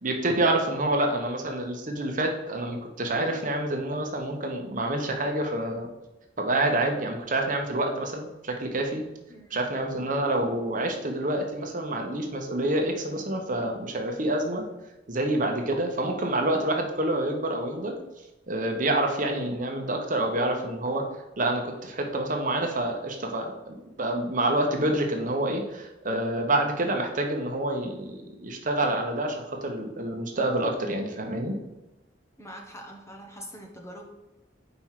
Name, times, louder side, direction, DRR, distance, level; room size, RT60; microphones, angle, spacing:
voice 1, 0.0-5.9 6.4-9.0 9.5-14.6 15.1-17.9 18.5-21.0 21.4-31.6, right 1 dB, 45° right, 3 dB, 1.1 m, -27 dB
voice 2, 9.3-9.7 32.4-34.1, equal, 15° left, 1 dB, 1.1 m, -44 dB
5.3 x 4.7 x 5.8 m, 1.0 s
head